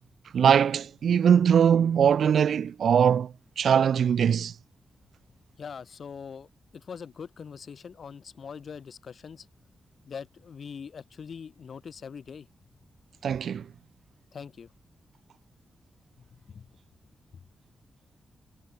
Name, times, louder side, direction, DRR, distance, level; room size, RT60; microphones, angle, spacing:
voice 1, 0.3-4.5 13.2-13.7, right 8 dB, 70° right, 0.5 m, -21 dB
voice 2, 5.6-9.5 10.0-12.5 14.3-14.7 16.2-16.7, left 6 dB, 50° left, 2.1 m, -42 dB
wide cardioid pair, 165°, 0 cm